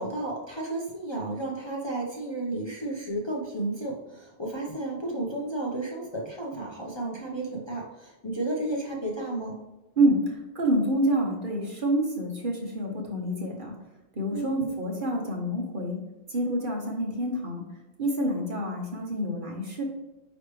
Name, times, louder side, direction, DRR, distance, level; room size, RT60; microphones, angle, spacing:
voice 1, 0.0-9.6 14.3-14.7, right 2 dB, 25° left, -3 dB, 0.9 m, -32 dB
voice 2, 10.0-13.7 14.2-16.0 16.3-17.6 18.0-19.8, right 1 dB, 45° right, 0 dB, 1.2 m, -27 dB
9.4 x 3.3 x 3.2 m, 1.0 s
omnidirectional pair, 1.3 m